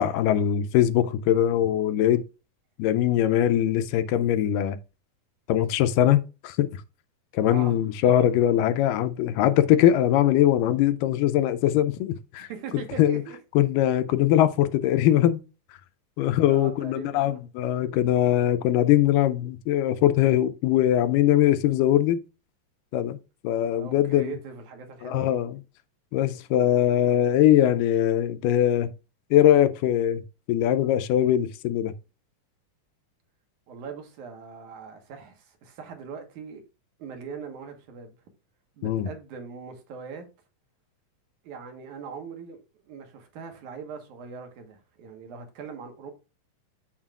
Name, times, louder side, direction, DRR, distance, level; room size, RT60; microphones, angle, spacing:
voice 1, 0.0-2.2 2.8-4.8 5.5-6.7 7.3-12.5 13.0-13.2 13.6-15.4 16.2-22.2 22.9-23.2 23.4-24.3 25.0-25.6 26.1-28.9 29.3-30.2 30.5-31.9 38.8-39.1, left 11 dB, 85° left, 2.1 m, -21 dB
voice 2, 12.5-13.4 16.5-17.4 23.7-25.4 33.7-36.6 37.0-38.2 38.8-40.3 41.4-46.1, right 6 dB, 65° right, 2.6 m, -41 dB
7.3 x 7.1 x 2.4 m
omnidirectional pair, 3.9 m